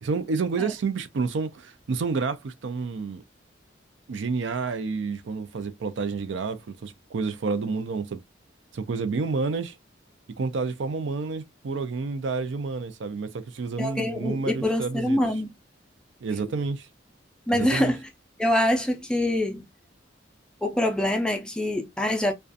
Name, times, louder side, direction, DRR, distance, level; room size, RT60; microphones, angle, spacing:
voice 1, 0.0-3.2 4.1-8.2 8.7-9.8 10.4-15.3 16.2-16.9 17.5-17.9, right 4 dB, 75° right, 0.4 m, -29 dB
voice 2, 13.8-15.5 17.5-18.0 18.4-19.7 20.6-22.3, left 1 dB, 5° left, 0.3 m, -25 dB
2.4 x 2.2 x 2.5 m
head